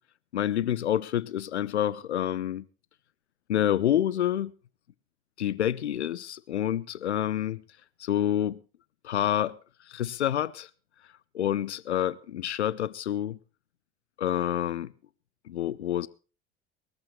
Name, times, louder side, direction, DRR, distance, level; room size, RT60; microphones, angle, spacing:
voice 1, 0.3-2.6 3.5-4.5 5.4-7.6 8.0-8.6 9.0-9.6 9.9-10.7 11.3-13.4 14.2-14.9 15.5-16.1, left 11 dB, 85° left, 0.6 m, -28 dB
21.5 x 14.0 x 3.2 m
figure-of-eight pair, 65°, 33 cm